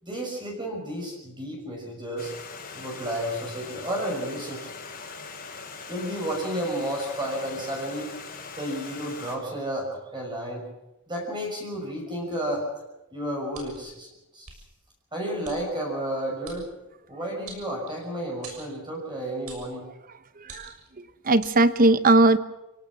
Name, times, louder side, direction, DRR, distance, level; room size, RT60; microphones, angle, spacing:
voice 1, 0.0-2.3 2.7-4.7 5.9-8.1 8.6-10.6 11.1-12.7 13.1-14.1 14.3-14.5 15.1-16.7 17.1-19.8, right 1 dB, 20° right, -1 dB, 6.0 m, -32 dB
Stream, 2.2-9.4, left 4 dB, 40° left, 4.9 m, -41 dB
sound 1, 13.5-13.9 14.4-14.6 15.4-15.6 16.4-16.6 17.5-18.1 18.4-18.7 19.5-19.7 20.4-20.9 21.4-21.6, right 4 dB, 80° right, 6.7 m, -43 dB
voice 2, 20.4-22.4, right 2 dB, 40° right, 14 dB, 1.0 m, -20 dB
28.5 x 17.5 x 6.2 m, 0.97 s
head